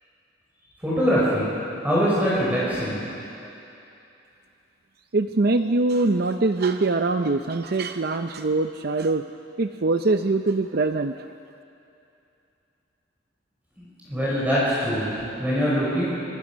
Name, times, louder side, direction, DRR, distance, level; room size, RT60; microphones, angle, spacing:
voice 1, 0.8-1.5 1.8-3.0 13.8-16.1, equal, 10° right, -8 dB, 5.8 m, -23 dB
voice 2, 5.1-9.2 9.6-11.1, right 3 dB, 55° right, 7 dB, 0.6 m, -23 dB
25.5 x 24.0 x 6.3 m, 2.8 s
head